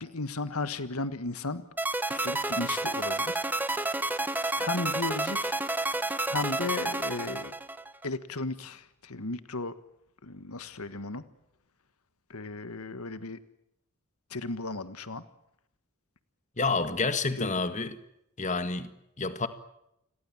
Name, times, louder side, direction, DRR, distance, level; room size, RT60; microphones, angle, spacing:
voice 1, 0.0-1.6 2.1-3.7 4.6-5.6 6.2-7.5 8.0-9.7 10.2-11.2 12.3-13.4 14.3-15.2 17.4-17.6, left 3 dB, 80° left, 1.6 m, -35 dB
sound 1, 1.8-8.1, right 2 dB, 10° right, 1.2 m, -30 dB
voice 2, 16.6-18.0 18.4-18.9 19.2-19.5, left 3 dB, 35° left, 1.8 m, -29 dB
29.0 x 22.5 x 7.3 m
head